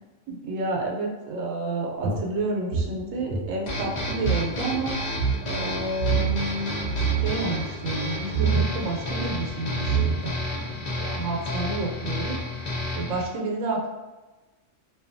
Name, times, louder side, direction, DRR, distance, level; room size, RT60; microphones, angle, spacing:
voice 1, 0.3-5.0 5.5-13.9, right 2 dB, 85° right, 0 dB, 1.0 m, -30 dB
sound 1, 2.0-4.5 4.7-4.8 5.1-5.4 6.0-6.5 6.8-7.4 8.3-8.7 9.5-9.6 9.8-10.5, right 6 dB, 65° right, 0.8 m, -25 dB
sound 2, 3.7-13.3, left 1 dB, 60° left, 0.4 m, -31 dB
2.6 x 2.3 x 2.5 m, 1.2 s
omnidirectional pair, 1.3 m